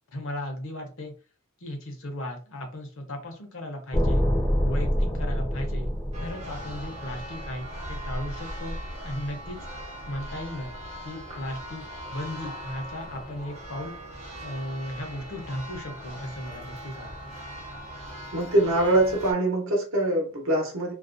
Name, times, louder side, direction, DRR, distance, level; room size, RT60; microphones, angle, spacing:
voice 1, 0.1-1.1 1.6-4.2 4.6-5.9 6.2-8.8 9.0-9.6 10.0-10.7 11.0-11.8 12.1-13.9 14.4-17.3, left 1 dB, 65° left, 3 dB, 0.7 m, -36 dB
sound 1, 3.9-8.1, equal, 15° left, 0.4 m, -26 dB
Church bell, 6.1-19.3, equal, 30° right, 0.6 m, -39 dB
voice 2, 18.3-20.9, right 1 dB, 70° right, 0 dB, 0.8 m, -23 dB
2.4 x 2.1 x 2.5 m, 0.36 s
head